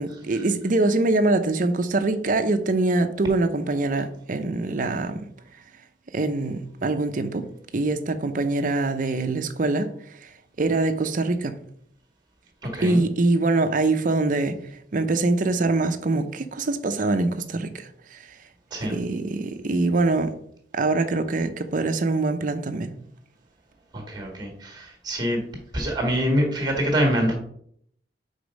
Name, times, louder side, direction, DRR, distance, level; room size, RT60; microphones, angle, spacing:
voice 1, 0.0-5.2 6.1-7.4 7.7-9.9 10.2-10.3 10.6-11.6 12.8-14.6 14.9-18.2 18.9-20.3 20.7-22.9, right 2 dB, 45° right, 0.5 m, -24 dB
voice 2, 12.6-13.0 18.7-19.0 23.9-25.4 25.7-27.3, equal, 20° right, 1.7 m, -25 dB
5.1 x 4.0 x 5.1 m
head